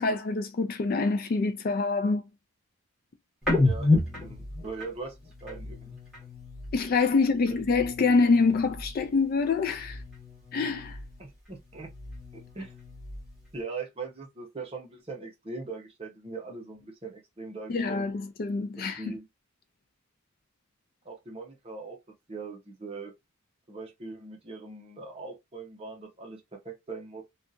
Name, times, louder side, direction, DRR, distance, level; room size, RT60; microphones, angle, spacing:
voice 1, 0.0-2.2 6.7-10.0 10.5-11.0 17.7-19.2, left 4 dB, 40° left, 0.3 m, -26 dB
sound 1, 3.4-7.0 7.3-9.1 9.4-11.3 11.6-13.5, left 2 dB, ahead, 1.3 m, -32 dB
voice 2, 3.6-6.0 7.5-7.6 11.2-11.9 12.3-12.7 13.5-18.1 18.8-19.2 21.0-22.0 22.3-23.1 23.7-27.2, right 4 dB, 25° right, 0.7 m, -41 dB
2.7 x 2.3 x 2.5 m
head